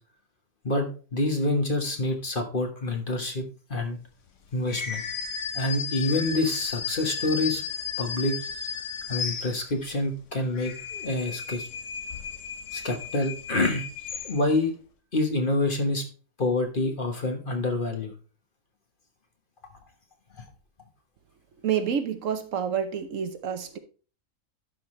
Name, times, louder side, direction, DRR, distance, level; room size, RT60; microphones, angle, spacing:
voice 1, 0.6-3.4 3.7-4.0 4.5-5.0 5.5-7.6 8.0-8.4 9.1-11.7 12.7-13.9 14.2-14.7 15.1-16.0 16.4-18.1, left 2 dB, 40° left, 1.4 m, -27 dB
sound 1, 4.7-9.9 10.4-14.7, left 6 dB, 60° left, 1.2 m, -34 dB
voice 2, 21.6-23.8, right 8 dB, 65° right, 1.1 m, -28 dB
12.0 x 5.7 x 3.2 m
omnidirectional pair, 1.5 m